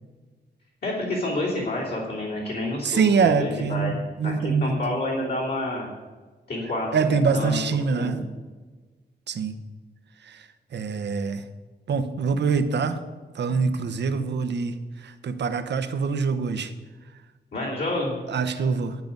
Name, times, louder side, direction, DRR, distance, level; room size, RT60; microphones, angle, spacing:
voice 1, 0.8-3.9 4.2-5.9 6.5-7.6 8.0-8.2 17.5-18.2, left 1 dB, 70° left, -6 dB, 3.1 m, -29 dB
voice 2, 2.8-4.9 6.9-8.2 9.3-9.5 10.3-10.4 10.7-11.4 11.9-13.0 13.3-14.8 15.0-16.7 18.3-19.0, right 5 dB, 85° right, 10 dB, 0.9 m, -24 dB
11.0 x 9.2 x 5.4 m, 1.3 s
wide cardioid pair, 165°, 17 cm